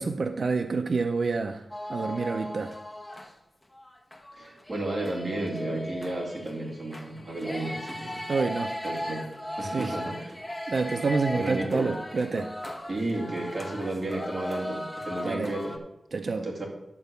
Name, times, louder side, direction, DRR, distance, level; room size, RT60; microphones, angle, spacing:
voice 1, 0.0-2.7 8.3-8.8 9.6-10.0 10.7-12.5 15.2-15.5 16.1-16.5, right 4 dB, 55° right, 6 dB, 0.5 m, -28 dB
sound 1, 1.7-3.3 3.7-15.8, left 1 dB, 15° left, 1.0 m, -37 dB
voice 2, 4.3-8.2 8.8-9.3 9.6-10.4 11.3-11.9 12.9-15.8 16.4-16.7, right 2 dB, 35° right, -3 dB, 2.3 m, -33 dB
11.0 x 3.9 x 6.8 m, 0.89 s
wide cardioid pair, 150°, 0 cm